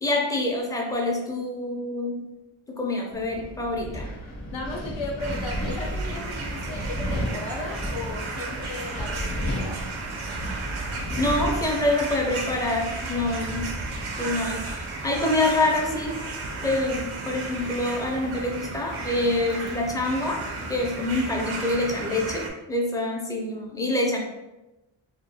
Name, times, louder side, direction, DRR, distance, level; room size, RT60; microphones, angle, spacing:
voice 1, 0.0-2.3 2.7-4.1 11.2-13.7 14.2-16.2 16.6-24.2, left 2 dB, 10° left, 0 dB, 0.4 m, -26 dB
Wind, 3.1-14.6, equal, 35° left, 0.8 m, -34 dB
voice 2, 4.5-9.9, left 2 dB, 75° left, -1 dB, 0.6 m, -35 dB
sound 1, 5.2-22.5, right 3 dB, 85° right, 0.6 m, -34 dB
2.5 x 2.3 x 2.7 m, 1.0 s
wide cardioid pair, 70°, 48 cm